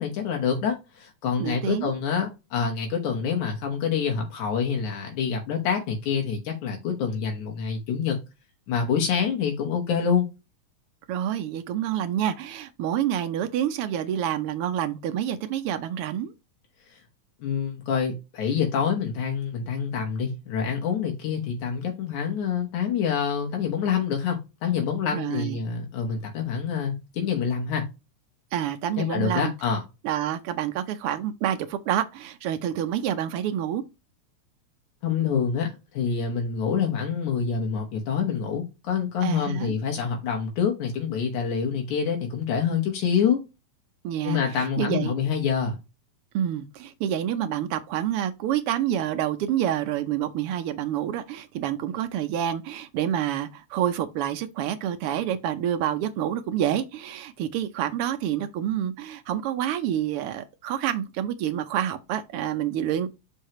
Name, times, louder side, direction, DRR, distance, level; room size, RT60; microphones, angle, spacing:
voice 1, 0.0-8.2 8.7-10.3 16.9-17.0 17.4-27.8 29.0-29.8 35.0-43.4 44.2-45.8, left 7 dB, 80° left, 2.8 m, -26 dB
voice 2, 1.4-1.9 11.1-16.3 25.1-25.6 28.5-29.5 30.0-33.8 39.2-39.7 44.0-45.1 46.3-63.1, right 10 dB, 85° right, 1.2 m, -28 dB
6.5 x 5.5 x 3.0 m
omnidirectional pair, 3.4 m